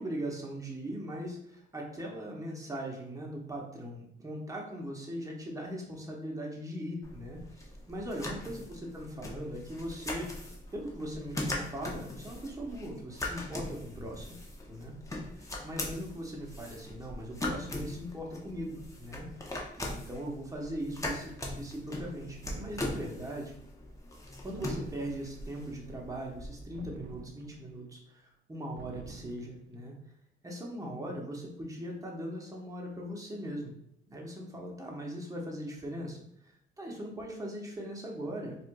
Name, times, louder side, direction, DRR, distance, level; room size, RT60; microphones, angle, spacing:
voice 1, 0.0-10.3 10.7-14.4 14.7-14.9 15.4-19.3 19.8-23.6 24.4-29.9 30.4-33.7 34.1-38.6, equal, 15° right, -1 dB, 0.9 m, -40 dB
sound 1, 7.0-26.6, left 1 dB, 15° left, 0.7 m, -40 dB
sound 2, 22.4-23.3 24.5-25.5 26.7-27.8 28.8-29.6, right 5 dB, 60° right, 0.4 m, -48 dB
4.2 x 2.5 x 2.2 m, 0.73 s
cardioid pair, 90°, 20 cm